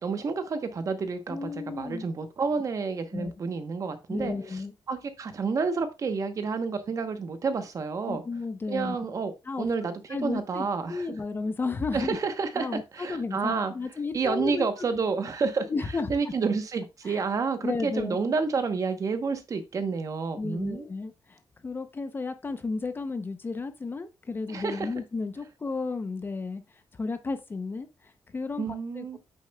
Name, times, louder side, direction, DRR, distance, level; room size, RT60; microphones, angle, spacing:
voice 1, 0.0-4.3 4.9-8.2 8.7-9.3 9.6-11.0 11.9-12.7 12.9-13.7 14.1-15.7 16.1-20.9 24.5-24.9 28.6-29.2, right 5 dB, 40° right, 0.9 m, -29 dB
voice 2, 1.3-2.0 3.1-3.3 4.1-4.7 8.1-9.0 9.5-9.7 10.1-12.2 12.6-14.7 15.6-16.1 17.0-17.2 17.6-18.2 20.4-26.6 26.9-29.2, left 4 dB, 25° left, 0.6 m, -33 dB
8.3 x 6.8 x 2.2 m
wide cardioid pair, 175°, 8 cm